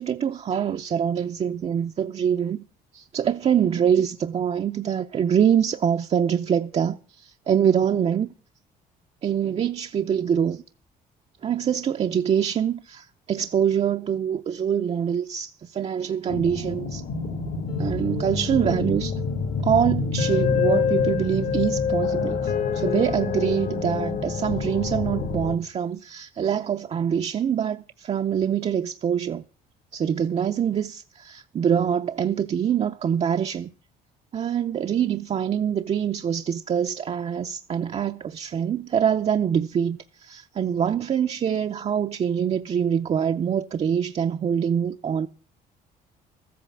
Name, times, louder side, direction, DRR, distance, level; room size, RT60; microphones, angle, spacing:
voice 1, 0.0-2.6 2.9-8.3 9.2-10.6 11.4-17.0 17.8-19.2 19.6-29.4 29.9-33.7 34.3-45.3, right 8 dB, 40° right, 0.6 m, -24 dB
sound 1, 16.3-25.6, left 5 dB, 65° left, 2.1 m, -26 dB
14.0 x 8.5 x 7.2 m
cardioid pair, 110°, 17 cm